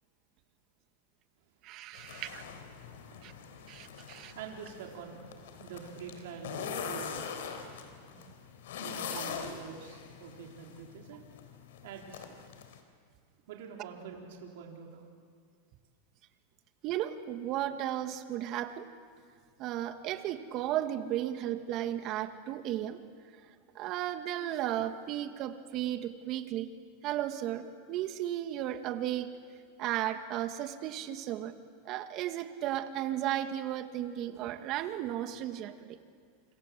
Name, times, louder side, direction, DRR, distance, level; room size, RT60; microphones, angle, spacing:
voice 1, 1.6-2.4 3.2-3.3 3.7-4.3 9.1-9.2 16.8-18.9 19.6-23.0 23.8-26.7 27.0-29.3 29.8-31.5 31.9-36.0, right 12 dB, 45° right, 8 dB, 2.0 m, -34 dB
sound 1, 1.9-12.8, left 6 dB, 80° left, 3.7 m, -43 dB
voice 2, 4.3-5.3 5.6-7.3 8.8-11.3 11.8-12.3 13.5-15.1, right 6 dB, 70° right, 0 dB, 4.0 m, -46 dB
28.5 x 26.5 x 7.7 m, 2.1 s
supercardioid pair, 120°, 0 cm